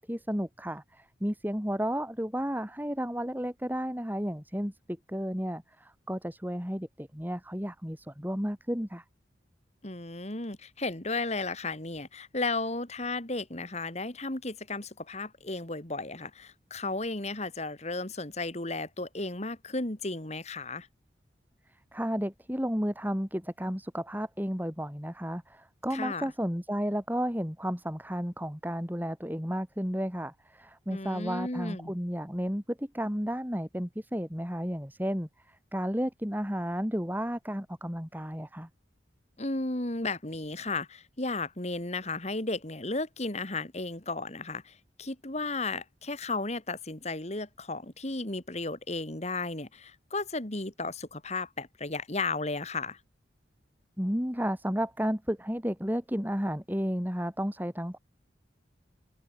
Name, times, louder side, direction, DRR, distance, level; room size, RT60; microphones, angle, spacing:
voice 1, 0.0-4.7 5.1-9.0 21.9-38.7 54.0-58.0, equal, 10° right, 5.7 m, -32 dB
voice 2, 9.8-20.9 25.9-26.3 30.9-31.9 39.4-53.0, left 3 dB, 35° left, 2.4 m, -34 dB
open air
head